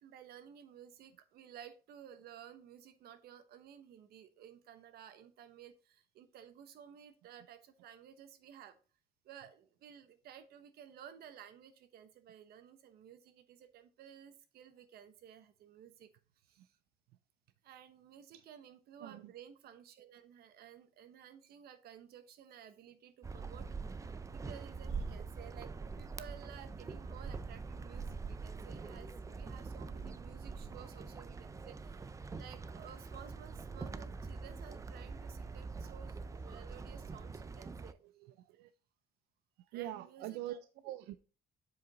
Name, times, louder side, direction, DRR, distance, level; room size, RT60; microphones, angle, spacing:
voice 1, 0.0-8.8 9.2-16.1 16.4-16.8 17.6-38.0 39.6-40.6 40.8-40.9, right 9 dB, 70° right, 1.0 m, -55 dB
sound 1, 23.2-37.9, right 4 dB, 20° right, 0.4 m, -44 dB
voice 2, 38.4-38.7 39.7-41.2, right 13 dB, 90° right, 0.4 m, -44 dB
7.5 x 4.8 x 3.9 m
cardioid pair, 110°, 17 cm